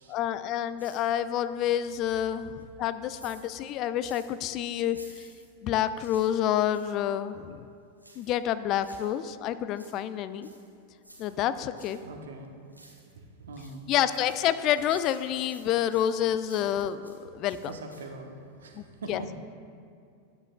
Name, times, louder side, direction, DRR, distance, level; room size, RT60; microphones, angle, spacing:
voice 1, 0.1-2.5 2.8-5.2 5.6-7.7 8.2-10.5 11.2-12.0 13.9-17.0 17.3-17.7 18.8-18.9 19.1-19.2, left 11 dB, 35° left, 13 dB, 0.4 m, -28 dB
sound 1, 0.8-1.5 1.9-4.4 4.9-7.0 8.0-9.2 9.6-12.0 12.4-13.2 13.5-17.2 17.4-18.3 18.6-18.7, right 1 dB, 90° right, 1.4 m, -54 dB
voice 2, 12.0-13.9 17.7-19.3, right 2 dB, 65° right, 4 dB, 0.9 m, -43 dB
12.5 x 9.0 x 2.3 m, 2.4 s
figure-of-eight pair, 90°, 0 cm